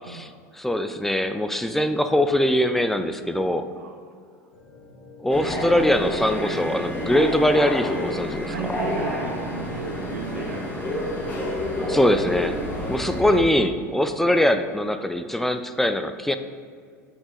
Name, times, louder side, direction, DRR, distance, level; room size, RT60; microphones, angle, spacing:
voice 1, 0.5-3.7 5.2-8.5 11.9-12.6 12.9-16.4, left 1 dB, 5° left, 9 dB, 0.4 m, -22 dB
voice 2, 3.8-4.1 8.4-10.9 12.6-13.1, right 5 dB, 75° right, 5 dB, 0.5 m, -35 dB
sound 1, 4.5-10.7, left 4 dB, 60° left, 1.1 m, -46 dB
sound 2, 5.3-13.4, left 1 dB, 20° left, 1.5 m, -29 dB
5.5 x 4.5 x 4.9 m, 2.1 s
figure-of-eight pair, 75°, 9 cm